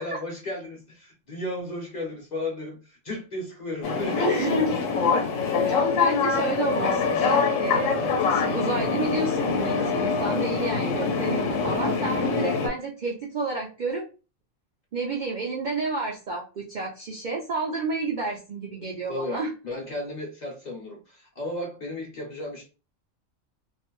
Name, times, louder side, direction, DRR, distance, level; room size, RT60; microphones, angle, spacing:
voice 1, 0.0-4.8 5.1-5.4 6.1-6.2 19.1-22.7, left 1 dB, 45° left, 0.7 m, -34 dB
sound 1, 3.8-12.7, left 5 dB, 80° left, 1.0 m, -24 dB
voice 2, 4.2-4.8 5.6-14.1 14.9-19.5, right 3 dB, 65° right, 0.4 m, -31 dB
2.5 x 2.1 x 2.9 m
omnidirectional pair, 1.3 m